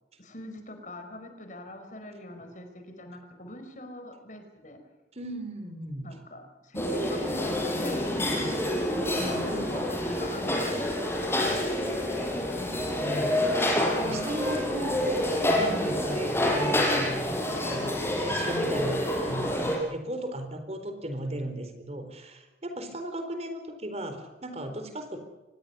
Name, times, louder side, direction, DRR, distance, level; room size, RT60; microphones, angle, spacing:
voice 1, 0.2-4.8 6.0-8.6 9.1-11.0 11.3-11.9 15.6-16.1, left 1 dB, 45° left, 6 dB, 4.5 m, -42 dB
voice 2, 5.1-6.1 8.4-8.6 8.9-9.8 12.5-25.2, right 1 dB, 35° right, 7 dB, 4.0 m, -37 dB
sound 1, 6.7-19.8, left 1 dB, 15° left, 5.7 m, -28 dB
25.5 x 20.5 x 6.8 m, 1.1 s
head